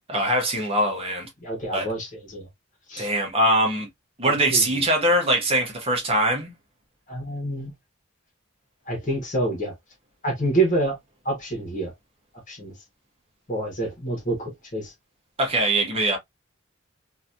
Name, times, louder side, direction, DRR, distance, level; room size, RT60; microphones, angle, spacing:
voice 1, 0.1-1.3 1.7-1.9 3.0-3.9 4.2-6.5 15.4-16.2, right 1 dB, 30° right, 1.0 m, -22 dB
voice 2, 1.4-2.5 2.9-3.1 4.3-4.6 7.1-7.7 8.9-9.7 10.2-11.0 11.2-11.9 12.5-12.7 13.5-14.9, right 2 dB, 40° left, 1.3 m, -27 dB
3.0 x 2.7 x 2.4 m
head